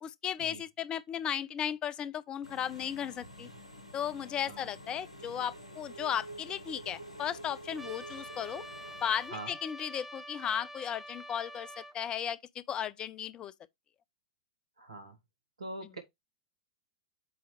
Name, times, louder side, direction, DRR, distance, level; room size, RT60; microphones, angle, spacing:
voice 1, 0.0-3.5 3.9-8.6 9.0-13.5, left 9 dB, 25° left, 0.5 m, -35 dB
Engine / Mechanisms, 2.4-9.3, right 1 dB, 90° left, 1.1 m, -48 dB
Trumpet, 7.8-12.0, equal, 10° right, 0.7 m, -46 dB
voice 2, 14.8-15.2 15.6-16.0, right 1 dB, 80° right, 2.0 m, -43 dB
8.0 x 3.0 x 4.9 m
figure-of-eight pair, 95°, 3 cm